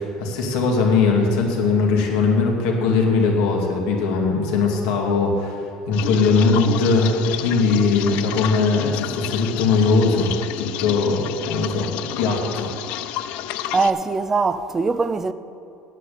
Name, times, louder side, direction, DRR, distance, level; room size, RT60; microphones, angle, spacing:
voice 1, 0.0-12.7, left 4 dB, 80° left, 2.2 m, -20 dB
sound 1, 5.9-13.9, left 13 dB, 65° left, 0.4 m, -31 dB
voice 2, 13.7-15.3, right 4 dB, 15° right, 0.4 m, -21 dB
8.4 x 8.3 x 8.4 m
cardioid pair, 140°, 2 cm